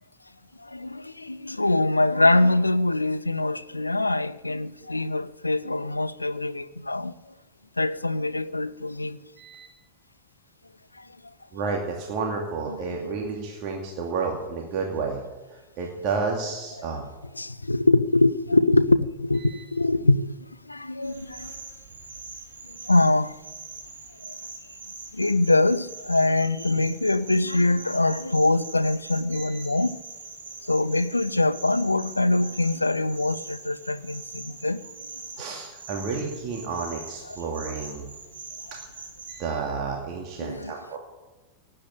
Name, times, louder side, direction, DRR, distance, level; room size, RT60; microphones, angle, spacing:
voice 1, 0.6-7.1 7.8-9.2 11.0-11.1 12.7-12.8 17.3-21.5 22.9-23.4 24.3-24.4 25.1-30.0 30.6-34.8 37.3-37.4 40.4-41.0, left 2 dB, 85° left, 0.5 m, -23 dB
voice 2, 9.4-9.7 11.5-15.2 15.5-17.0 19.4-19.6 29.3-29.6 35.4-38.1 39.3-41.0, right 4 dB, 40° right, 2.4 m, -31 dB
sound 1, 21.0-39.4, right 4 dB, 65° right, 5.0 m, -42 dB
18.0 x 8.8 x 8.3 m
figure-of-eight pair, 90°, 0 cm